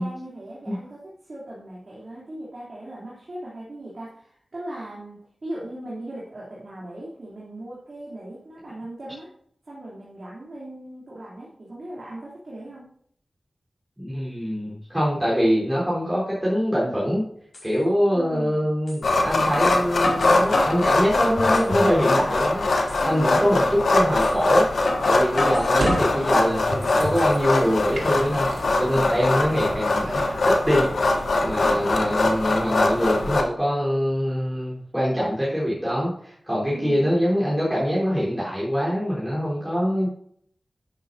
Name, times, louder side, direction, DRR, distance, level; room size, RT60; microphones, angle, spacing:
voice 1, 0.0-9.3 9.6-12.9 18.1-18.7 23.0-23.7 25.3-25.6 31.3-31.9 36.5-37.1, right 1 dB, 55° right, -7 dB, 3.0 m, -38 dB
voice 2, 14.0-17.2 17.6-23.6 23.9-24.7 25.1-28.5 28.8-30.9 31.4-40.1, equal, 5° right, -8 dB, 3.8 m, -24 dB
sound 1, 17.5-17.7 18.9-19.0 19.5-20.8 21.4-21.9 22.3-22.4 22.9-23.0 24.2-24.3 24.9-26.2 26.7-27.2, left 2 dB, 60° left, 4.7 m, -30 dB
sound 2, 19.0-33.4, left 2 dB, 85° left, 1.0 m, -22 dB
sound 3, 25.5-32.8, right 2 dB, 90° right, 2.1 m, -36 dB
11.0 x 9.5 x 2.7 m, 0.65 s
wide cardioid pair, 95°, 0 cm